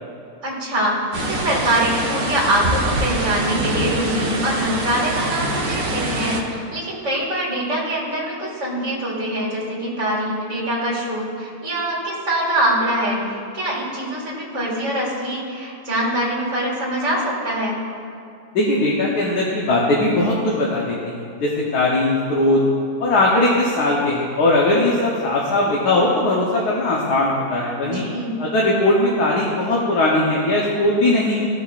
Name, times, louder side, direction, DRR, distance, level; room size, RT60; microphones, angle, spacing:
voice 1, 0.4-17.8 27.8-28.3, right 1 dB, 50° right, -5 dB, 2.4 m, -23 dB
sound 1, 1.1-6.4, right 1 dB, 65° right, 1.5 m, -24 dB
voice 2, 18.5-22.6 23.0-28.0 28.4-31.5, left 2 dB, 75° left, -4 dB, 1.6 m, -19 dB
16.0 x 5.9 x 2.5 m, 2.5 s
omnidirectional pair, 1.7 m